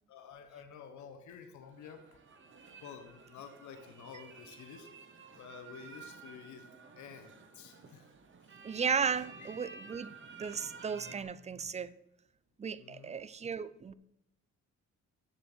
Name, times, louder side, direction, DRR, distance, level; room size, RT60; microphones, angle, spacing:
voice 1, 0.1-2.2 2.8-6.7 7.0-8.1 8.4-8.6 12.8-13.2, left 7 dB, 70° left, 7 dB, 1.2 m, -51 dB
sound 1, 1.6-11.2, right 4 dB, 40° right, 1.2 m, -52 dB
voice 2, 8.6-10.1 10.4-11.9 12.6-13.9, right 6 dB, 25° right, 17 dB, 0.5 m, -35 dB
7.4 x 6.8 x 6.3 m, 0.78 s
cardioid pair, 90°, 30 cm